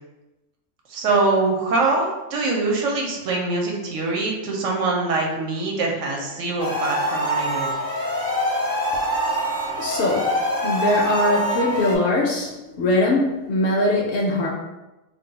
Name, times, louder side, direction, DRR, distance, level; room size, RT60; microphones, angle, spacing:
voice 1, 0.9-7.7, right 3 dB, 70° right, -1 dB, 1.0 m, -23 dB
sound 1, 6.6-12.0, equal, 20° right, 0.4 m, -24 dB
voice 2, 9.8-10.3 10.6-14.5, left 1 dB, 65° left, -1 dB, 0.7 m, -21 dB
2.5 x 2.2 x 3.9 m, 1.0 s
omnidirectional pair, 1.4 m